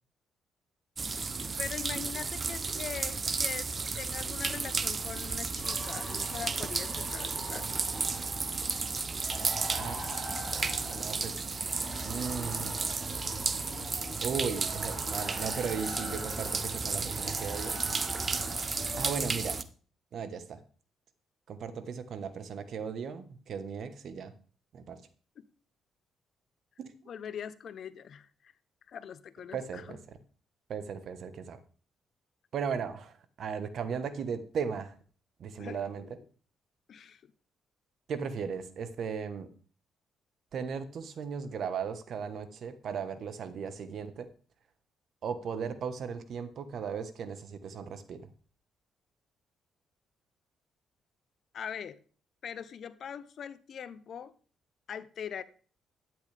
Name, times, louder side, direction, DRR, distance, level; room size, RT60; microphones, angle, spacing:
sound 1, 1.0-19.6, right 4 dB, 35° right, 0.8 m, -33 dB
voice 1, 1.6-3.7 4.0-7.9 13.6-14.3 25.4-25.5 27.1-28.5 28.9-30.0 35.6-36.1 36.9-37.2 51.5-52.0 52.4-54.3 54.9-55.4, left 8 dB, 60° left, 0.8 m, -42 dB
sound 2, 5.6-19.2, equal, 10° right, 6.2 m, -44 dB
voice 2, 9.7-10.2 10.5-11.4 12.0-12.7 14.2-17.8 19.0-19.6 20.1-20.6 21.5-24.3 24.7-25.0 29.5-30.0 30.7-31.6 32.5-34.9 35.4-36.2 38.1-39.5 40.5-44.3 45.2-48.3, right 6 dB, 65° right, 1.3 m, -36 dB
12.0 x 9.5 x 3.5 m
cardioid pair, 90°, 0 cm